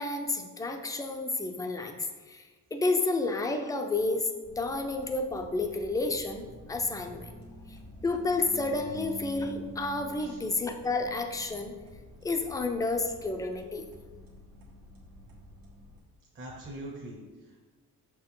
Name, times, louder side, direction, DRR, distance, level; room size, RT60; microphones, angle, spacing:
voice 1, 0.0-2.4 2.7-4.3 4.6-6.4 6.7-7.3 8.0-11.7 12.2-13.9, left 3 dB, 10° left, 5 dB, 0.4 m, -30 dB
sound 1, 4.4-16.0, right 1 dB, 75° right, 1.5 m, -48 dB
voice 2, 16.3-17.6, right 1 dB, 35° right, -4 dB, 0.9 m, -43 dB
6.4 x 4.4 x 3.8 m, 1.4 s
wide cardioid pair, 140°, 35 cm